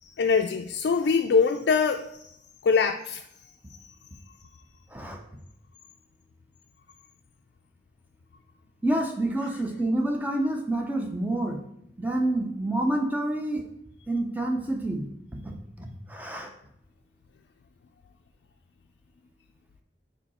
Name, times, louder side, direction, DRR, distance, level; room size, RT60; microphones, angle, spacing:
voice 1, 0.0-2.3 2.6-3.2, left 5 dB, 75° left, 4 dB, 0.3 m, -23 dB
voice 2, 8.8-11.6 12.0-13.6 14.1-15.1 15.4-16.5, right 1 dB, 10° right, 2 dB, 0.6 m, -28 dB
5.0 x 4.7 x 4.2 m, 0.75 s
head